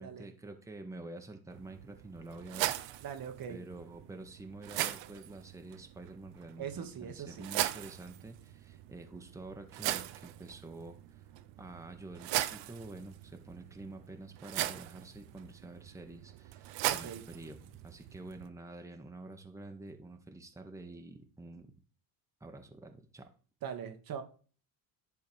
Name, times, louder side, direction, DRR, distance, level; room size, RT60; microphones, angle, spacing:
voice 1, 0.0-3.0 3.5-11.2 11.6-21.7 22.4-23.3, right 2 dB, 5° right, 1.2 m, -48 dB
sound 1, 1.5-18.5, right 14 dB, 65° right, 0.8 m, -40 dB
voice 2, 3.0-3.6 6.6-7.5 16.9-17.2 23.6-24.2, right 8 dB, 45° right, 1.3 m, -41 dB
10.5 x 3.7 x 4.6 m
supercardioid pair, 80°, 47 cm